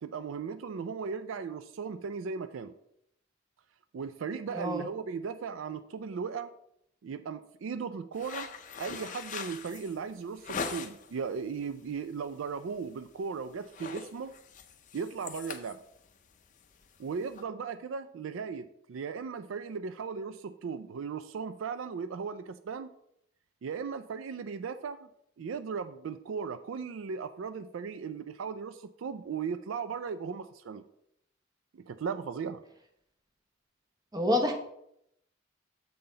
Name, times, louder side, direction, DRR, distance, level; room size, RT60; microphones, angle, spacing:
voice 1, 0.0-2.7 3.9-6.5 7.0-8.5 8.8-14.3 14.9-15.8 17.0-22.9 23.6-25.1 25.4-30.8 31.7-32.6, right 5 dB, 70° right, 11 dB, 0.4 m, -37 dB
voice 2, 4.5-4.8 34.1-34.5, left 1 dB, 20° right, 5 dB, 0.7 m, -27 dB
sound 1, 8.1-11.2 11.6-12.0 12.3-12.5 12.8-13.2 13.5-17.4, left 5 dB, 35° left, 0.5 m, -41 dB
6.9 x 5.6 x 3.8 m, 0.76 s
head